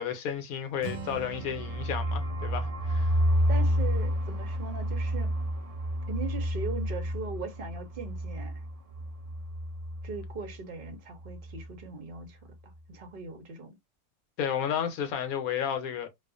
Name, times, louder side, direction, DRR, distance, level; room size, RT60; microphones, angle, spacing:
voice 1, 0.0-3.2 14.4-16.1, left 8 dB, 75° left, 1.0 m, -32 dB
Acoustic guitar, 0.8-4.7, right 5 dB, 90° right, 1.2 m, -45 dB
sound 1, 0.9-10.5 10.8-10.9 11.2-11.7, equal, 70° right, 0.3 m, -30 dB
voice 2, 3.5-5.3 6.1-8.6 10.0-12.4 12.6-13.8, right 4 dB, 50° right, 0.7 m, -39 dB
2.4 x 2.3 x 2.4 m
omnidirectional pair, 1.6 m